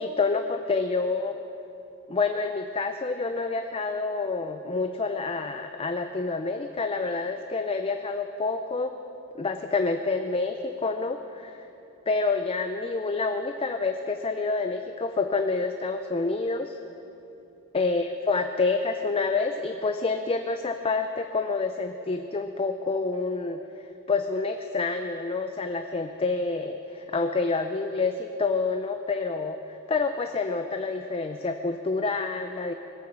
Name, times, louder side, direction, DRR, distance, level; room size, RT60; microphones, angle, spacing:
voice 1, 0.0-1.4 2.1-9.0 9.4-11.6 12.1-16.7 17.7-23.6 24.1-32.7, left 3 dB, 25° left, 6 dB, 0.5 m, -28 dB
21.0 x 8.7 x 6.8 m, 2.9 s
head